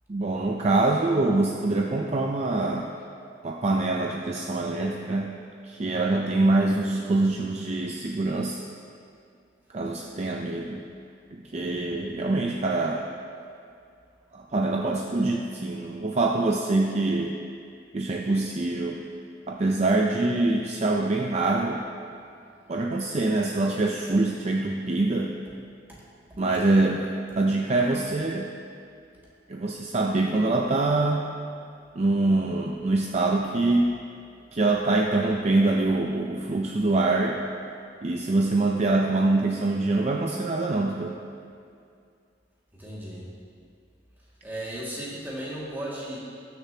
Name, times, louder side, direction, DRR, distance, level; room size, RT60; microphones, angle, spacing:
voice 1, 0.1-2.9 3.4-5.4 5.6-8.6 9.7-10.8 11.3-13.1 14.3-17.3 17.9-19.0 19.5-21.8 22.7-25.3 26.4-28.5 29.5-31.3 32.0-33.9 34.5-37.4 38.0-41.2, right 2 dB, 35° right, 0 dB, 0.5 m, -24 dB
voice 2, 42.7-43.3 44.4-46.2, right 1 dB, 10° right, -7 dB, 2.1 m, -35 dB
18.5 x 6.8 x 2.9 m, 2.4 s
head